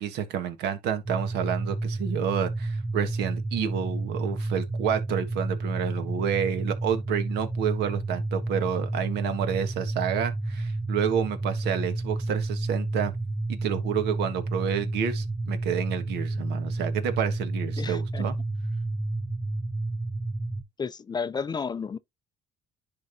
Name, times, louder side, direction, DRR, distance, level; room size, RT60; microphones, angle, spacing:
voice 1, 0.0-13.1 13.5-18.4, right 8 dB, 80° right, 1.4 m, -29 dB
sound 1, 1.1-20.6, right 2 dB, 5° right, 0.8 m, -30 dB
voice 2, 17.8-18.2 20.8-22.0, left 5 dB, 25° left, 0.4 m, -32 dB
10.5 x 3.5 x 2.7 m
cardioid pair, 110°, 17 cm